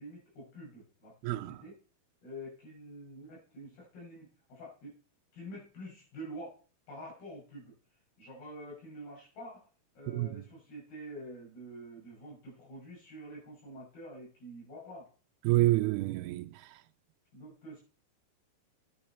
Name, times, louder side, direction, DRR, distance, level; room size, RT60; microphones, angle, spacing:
voice 1, 0.0-1.7 2.2-5.0 5.3-6.6 6.9-7.7 8.2-9.7 9.9-15.1 17.3-17.8, equal, 75° left, 8.4 m, -47 dB
voice 2, 1.2-1.6 10.1-10.3 15.4-16.5, right 18 dB, 85° right, 2.6 m, -27 dB
10.5 x 10.0 x 4.4 m
omnidirectional pair, 4.5 m